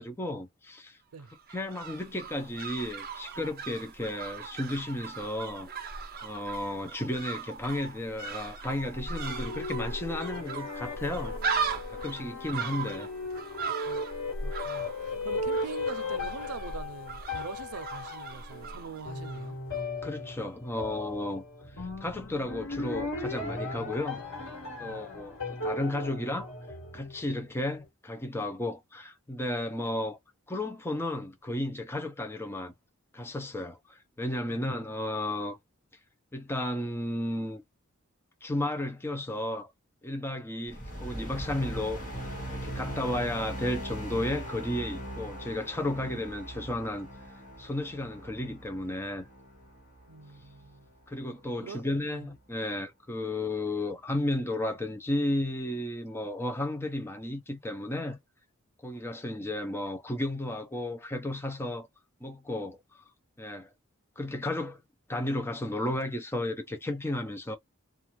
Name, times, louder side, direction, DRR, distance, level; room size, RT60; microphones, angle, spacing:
voice 1, 0.0-1.0 1.5-5.7 6.2-11.4 11.9-13.1 20.0-21.4 21.8-24.2 24.8-26.5 26.9-30.2 30.5-32.7 33.1-35.6 36.3-37.6 38.4-39.7 40.0-47.1 47.6-49.2 51.1-58.2 58.8-61.9 62.2-63.0 63.4-63.7 64.2-64.8 65.1-67.6, left 1 dB, 10° left, 0.6 m, -33 dB
sound 1, 1.3-19.5 19.7-19.8, right 5 dB, 45° right, 0.7 m, -38 dB
sound 2, 8.8-27.4, left 2 dB, 65° left, 1.6 m, -37 dB
voice 2, 14.4-19.6 24.8-25.0 50.1-50.9 51.6-52.3, right 5 dB, 85° right, 0.5 m, -43 dB
sound 3, 40.7-51.1, right 1 dB, 40° left, 1.4 m, -40 dB
2.5 x 2.4 x 3.0 m
head